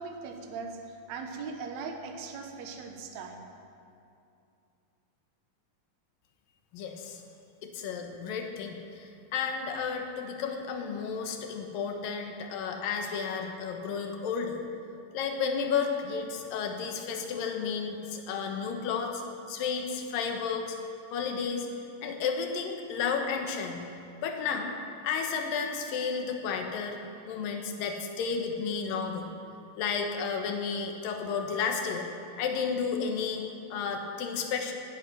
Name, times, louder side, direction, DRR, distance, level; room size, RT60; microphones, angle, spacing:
voice 1, 0.0-3.5, right 4 dB, 60° right, 3 dB, 2.1 m, -39 dB
voice 2, 6.7-7.2 7.6-14.6 15.1-19.2 19.5-20.8 21.1-21.7 22.0-23.9 24.2-24.7 25.0-27.0 27.3-29.3 29.8-32.1 32.4-33.4 33.7-34.7, left 6 dB, 80° left, 3 dB, 2.9 m, -32 dB
17.0 x 10.5 x 6.1 m, 2.6 s
omnidirectional pair, 4.0 m